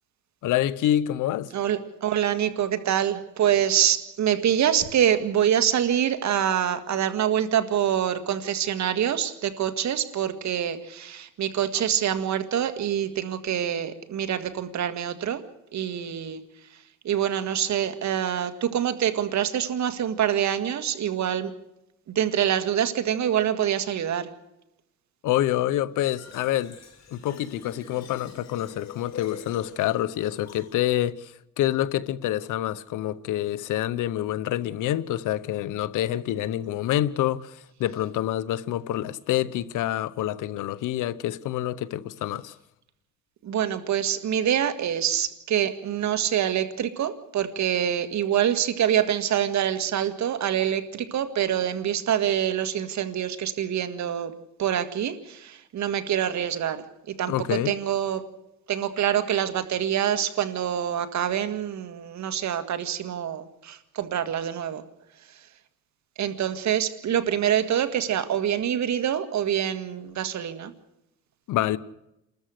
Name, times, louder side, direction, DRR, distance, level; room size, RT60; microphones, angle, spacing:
voice 1, 0.4-1.5 25.2-26.7 27.1-42.6 57.3-57.7 71.5-71.8, left 13 dB, 85° left, 0.9 m, -27 dB
voice 2, 1.5-15.4 15.7-16.4 17.0-21.6 22.1-24.3 43.4-54.3 54.6-58.3 58.7-64.8 65.3-65.4 66.2-70.7, right 10 dB, 65° right, 2.0 m, -25 dB
Fill (with liquid), 26.0-31.0, left 6 dB, 60° left, 6.7 m, -46 dB
29.0 x 13.5 x 6.6 m
cardioid pair, 90°, 30 cm